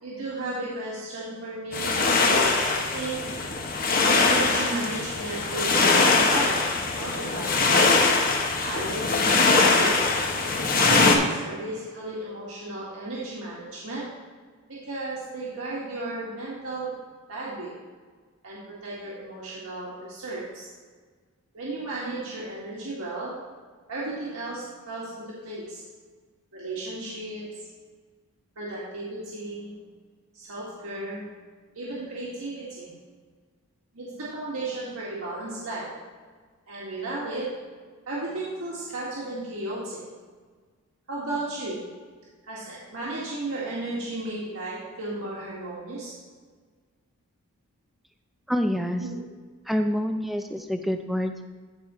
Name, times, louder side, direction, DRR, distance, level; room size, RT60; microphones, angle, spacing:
voice 1, 0.0-3.2 4.2-6.7 7.0-8.0 8.4-10.0 10.7-14.1 14.9-16.9 17.3-17.7 18.4-20.6 21.5-23.3 23.9-25.8 26.5-27.4 28.6-29.7 30.3-31.2 31.8-32.9 33.9-35.9 36.7-37.5 38.1-40.0 41.1-41.9 42.5-46.1 49.0-49.2, right 2 dB, 80° right, -7 dB, 1.8 m, -34 dB
sound 1, 1.7-11.2, left 3 dB, 40° left, 0.9 m, -22 dB
voice 2, 48.5-49.1 49.7-51.5, equal, ahead, 5 dB, 0.4 m, -27 dB
14.0 x 5.0 x 3.1 m, 1.5 s
head